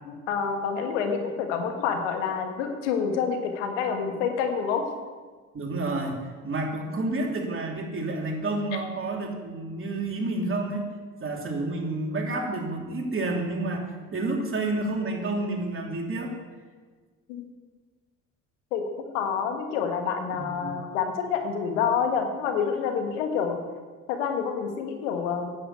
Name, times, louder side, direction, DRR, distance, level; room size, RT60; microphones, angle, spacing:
voice 1, 0.1-4.8 17.3-17.4 18.7-18.8 19.1-23.6 24.1-25.5, left 6 dB, 85° left, 4 dB, 1.6 m, -28 dB
voice 2, 5.5-10.8 11.2-16.3 20.3-20.7, right 2 dB, 35° right, 0 dB, 3.0 m, -30 dB
9.6 x 7.9 x 8.0 m, 1.4 s
hypercardioid pair, 65°, 36 cm